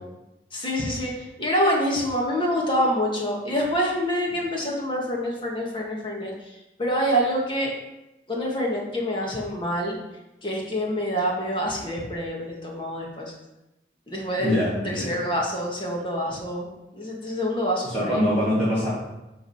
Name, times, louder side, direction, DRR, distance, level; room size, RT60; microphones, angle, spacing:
voice 1, 0.5-7.7 8.3-10.0 10.4-13.3 14.1-16.7 16.9-18.2, equal, 30° left, -2 dB, 1.8 m, -26 dB
voice 2, 14.4-15.2 17.8-18.9, equal, 10° left, -11 dB, 2.2 m, -24 dB
9.6 x 3.9 x 5.6 m, 0.96 s
head